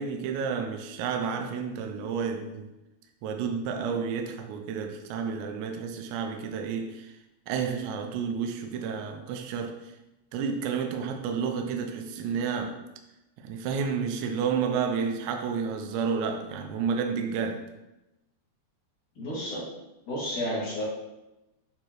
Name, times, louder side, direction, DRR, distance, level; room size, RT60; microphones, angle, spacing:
voice 1, 0.0-2.7 3.2-7.1 7.5-9.9 10.3-12.8 13.4-17.7, right 6 dB, 85° right, 2.8 m, -31 dB
voice 2, 19.2-19.6 20.1-20.8, equal, 50° left, 3.2 m, -31 dB
8.9 x 3.8 x 3.1 m
omnidirectional pair, 5.2 m